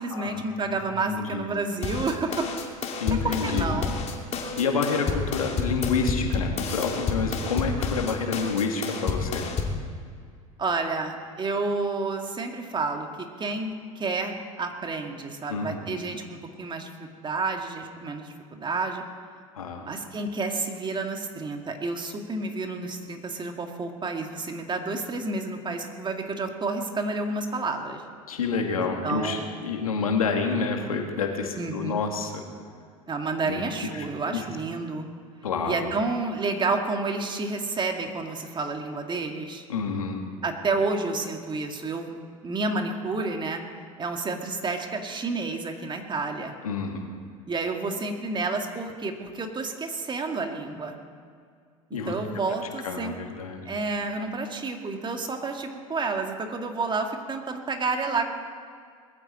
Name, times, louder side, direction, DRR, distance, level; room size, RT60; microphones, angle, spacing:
voice 1, 0.0-2.5 3.2-4.0 10.6-19.0 19.8-28.0 28.8-29.5 31.6-32.0 33.1-35.1 35.6-39.6 40.4-42.1 42.4-43.6 44.0-46.6 47.5-51.0 52.1-53.2 53.7-58.3, right 3 dB, 25° right, 4 dB, 2.2 m, -30 dB
voice 2, 0.7-1.5 3.0-3.7 4.6-9.5 15.5-16.0 19.5-19.9 28.3-32.4 33.4-33.6 33.9-34.1 34.3-34.5 35.4-35.9 39.7-40.2 46.6-47.0 51.9-52.1 52.8-53.7, left 4 dB, 85° left, 3 dB, 2.1 m, -28 dB
sound 1, 1.8-9.8, left 5 dB, 35° left, 2.6 m, -30 dB
21.0 x 14.5 x 4.4 m, 2.1 s
hypercardioid pair, 80°, 18 cm